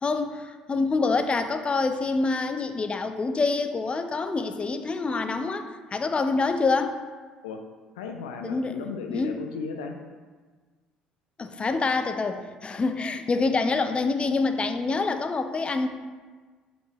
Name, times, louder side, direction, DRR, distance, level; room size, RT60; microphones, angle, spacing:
voice 1, 0.0-5.6 5.9-7.0 8.4-8.8 9.1-9.4 11.4-15.9, left 3 dB, 30° left, 8 dB, 0.5 m, -26 dB
voice 2, 8.0-10.0, left 5 dB, 75° left, 4 dB, 0.6 m, -35 dB
7.3 x 5.1 x 3.4 m, 1.4 s
hypercardioid pair, 55°, 4 cm